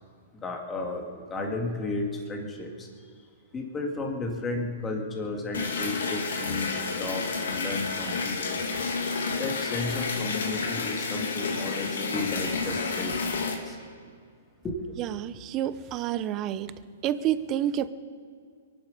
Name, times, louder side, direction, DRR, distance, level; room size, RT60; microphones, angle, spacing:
voice 1, 0.4-3.1 3.5-8.8 9.3-13.8 14.6-14.8, left 2 dB, 15° left, 1 dB, 2.4 m, -33 dB
sound 1, 5.5-13.6, left 4 dB, 75° left, 2.3 m, -30 dB
voice 2, 15.0-16.7 17.0-17.9, right 11 dB, 30° right, 14 dB, 0.8 m, -29 dB
23.0 x 11.5 x 5.3 m, 2.1 s
hypercardioid pair, 130°, 0 cm